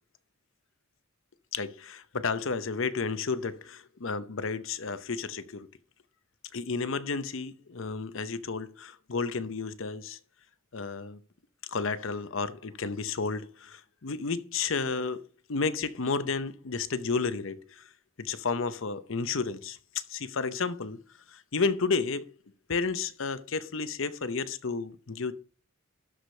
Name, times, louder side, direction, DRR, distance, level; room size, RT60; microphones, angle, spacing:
voice 1, 1.5-5.7 6.5-10.2 10.7-11.2 11.7-15.2 15.5-17.9 18.2-21.0 21.3-22.3 22.7-25.3, left 4 dB, 65° left, 0.8 m, -32 dB
12.5 x 5.0 x 5.6 m
head